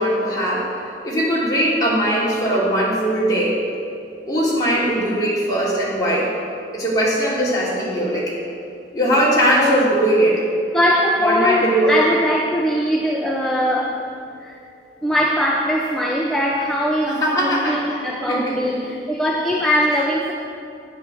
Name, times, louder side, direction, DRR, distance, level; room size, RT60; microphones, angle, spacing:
voice 1, 0.0-3.6 4.3-6.3 6.7-8.3 8.9-10.4 11.2-11.9 17.1-18.6, right 1 dB, 20° left, -7 dB, 3.2 m, -20 dB
voice 2, 10.7-14.0 14.4-14.6 15.0-20.3, equal, 5° left, -2 dB, 0.7 m, -21 dB
11.0 x 8.8 x 6.3 m, 2.5 s
head